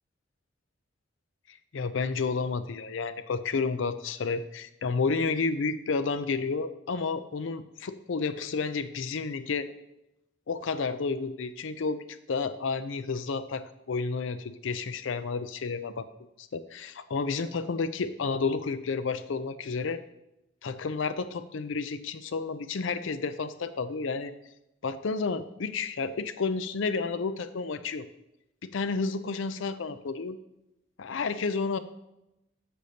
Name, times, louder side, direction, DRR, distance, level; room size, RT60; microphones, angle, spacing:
voice 1, 1.7-9.7 10.5-16.1 16.4-20.0 20.6-24.3 24.8-28.1 28.6-30.4 31.0-31.8, left 4 dB, 75° left, 12 dB, 0.5 m, -31 dB
8.3 x 7.8 x 2.8 m, 0.91 s
head